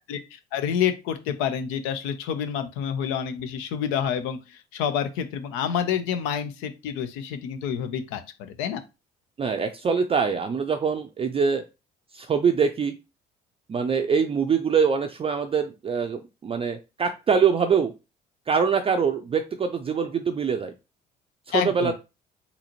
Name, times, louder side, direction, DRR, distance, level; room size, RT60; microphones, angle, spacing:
voice 1, 0.1-8.8 21.5-21.9, left 8 dB, 75° left, 10 dB, 0.6 m, -28 dB
voice 2, 9.4-11.6 12.1-13.0 13.7-17.9 18.5-20.7 21.5-21.9, right 6 dB, 25° right, 6 dB, 0.4 m, -24 dB
4.0 x 2.7 x 2.9 m, 0.27 s
hypercardioid pair, 65°, 21 cm